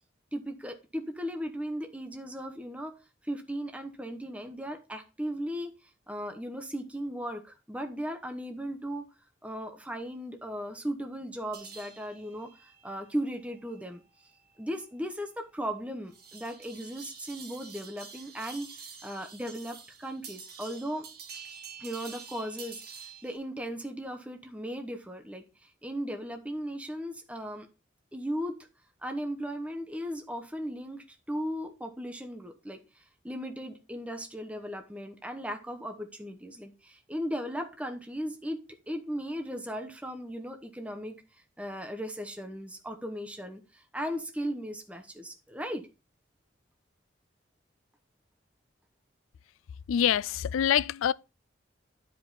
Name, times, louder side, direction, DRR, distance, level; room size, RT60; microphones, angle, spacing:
voice 1, 0.3-3.0 3.2-5.7 6.1-9.1 9.4-14.0 14.6-21.1 21.8-22.8 23.2-27.7 28.1-28.7 29.0-41.2 41.6-45.9, equal, 5° right, 0.9 m, -37 dB
sound 1, 11.5-23.4, right 6 dB, 50° right, 1.5 m, -48 dB
voice 2, 49.9-51.1, left 9 dB, 90° left, 0.3 m, -25 dB
10.0 x 5.0 x 4.0 m
head